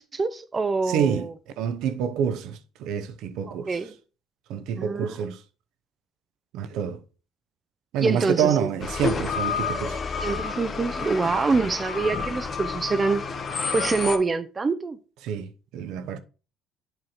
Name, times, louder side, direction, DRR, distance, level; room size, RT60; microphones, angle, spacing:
voice 1, 0.0-1.3 3.5-3.9 4.8-5.2 8.0-8.7 10.2-13.2 13.7-15.0, right 4 dB, 25° right, 0.5 m, -25 dB
voice 2, 0.9-1.3 1.6-3.8 4.5-5.4 6.5-7.0 7.9-10.0 15.2-16.2, right 8 dB, 75° right, 0.7 m, -27 dB
sound 1, 8.8-14.2, left 5 dB, 35° left, 1.0 m, -29 dB
7.7 x 3.0 x 5.6 m
cardioid pair, 100°, 0 cm